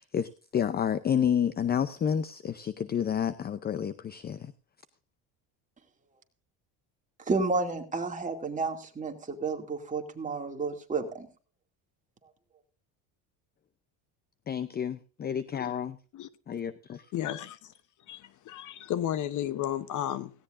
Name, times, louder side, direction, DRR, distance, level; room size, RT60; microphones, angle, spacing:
voice 1, 0.0-4.5 14.5-16.0 16.5-17.1, left 8 dB, 25° left, 0.6 m, -30 dB
voice 2, 7.3-11.3, right 3 dB, 20° right, 2.4 m, -31 dB
voice 3, 17.1-17.7 18.1-20.3, left 11 dB, 50° left, 0.9 m, -33 dB
17.5 x 16.5 x 2.6 m
cardioid pair, 135°, 40 cm